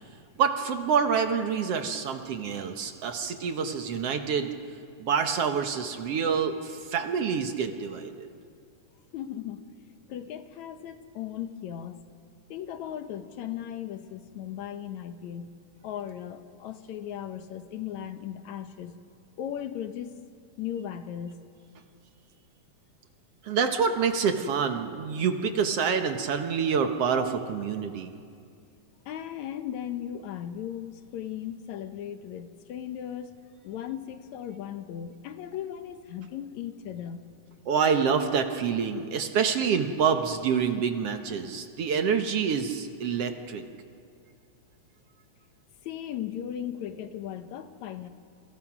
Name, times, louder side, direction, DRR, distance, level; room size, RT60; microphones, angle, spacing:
voice 1, 0.4-4.5 5.0-8.3 23.4-28.1 37.7-43.6, right 6 dB, 60° right, 6 dB, 2.0 m, -27 dB
voice 2, 9.1-9.6 10.1-12.0 12.5-15.5 15.8-19.0 19.4-20.2 20.6-21.3 29.1-33.4 33.6-37.3 45.8-48.1, left 10 dB, 75° left, 9 dB, 2.3 m, -37 dB
28.0 x 25.5 x 6.1 m, 2.3 s
omnidirectional pair, 3.4 m